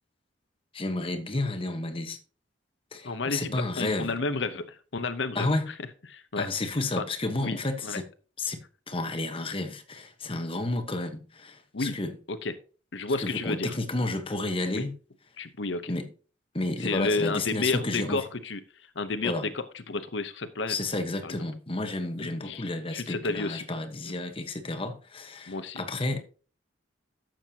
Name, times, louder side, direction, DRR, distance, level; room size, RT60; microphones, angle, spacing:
voice 1, 0.7-2.2 2.9-4.1 5.3-5.7 6.4-8.0 8.4-12.1 13.2-14.9 15.9-16.1 16.5-18.2 19.2-19.5 20.7-26.3, left 2 dB, 30° left, 1.2 m, -31 dB
voice 2, 3.0-5.7 6.1-6.5 7.0-7.1 7.4-8.0 11.7-12.0 12.3-12.5 12.9-13.8 14.7-14.8 15.4-15.9 16.8-20.8 21.2-21.4 22.2-23.7 24.0-24.1 25.5-25.8, left 3 dB, 75° left, 0.9 m, -31 dB
12.0 x 7.6 x 2.9 m
head